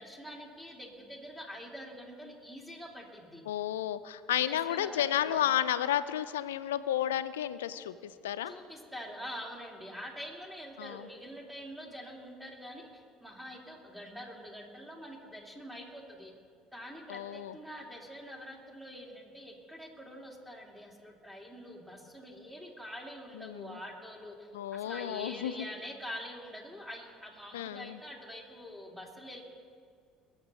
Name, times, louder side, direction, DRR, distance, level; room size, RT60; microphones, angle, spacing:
voice 1, 0.0-3.4 4.5-5.4 8.5-16.3 16.7-29.4, equal, 5° right, 0 dB, 2.8 m, -45 dB
voice 2, 3.5-8.5 10.8-11.1 17.1-17.6 23.3-23.8 24.5-25.7 27.5-28.0, left 11 dB, 80° left, 14 dB, 0.5 m, -32 dB
22.0 x 7.3 x 5.5 m, 2.1 s
hypercardioid pair, 65°, 0 cm